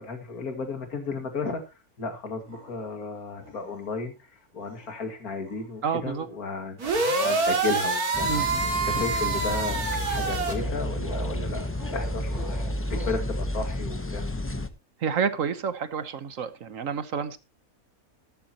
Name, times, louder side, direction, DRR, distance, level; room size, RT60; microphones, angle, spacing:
voice 1, 0.0-8.3 8.9-14.3, left 4 dB, 80° left, 2.6 m, -34 dB
sound 1, 2.5-3.0 3.4-4.2 4.6-5.8 8.5-13.2, left 1 dB, 55° left, 3.9 m, -45 dB
voice 2, 5.8-6.3 8.2-8.6 15.0-17.4, right 6 dB, 65° right, 1.3 m, -29 dB
sound 2, 6.8-10.5, right 3 dB, 85° right, 2.9 m, -26 dB
sound 3, 8.1-14.7, left 1 dB, 15° left, 0.6 m, -31 dB
13.0 x 12.0 x 2.9 m
omnidirectional pair, 1.5 m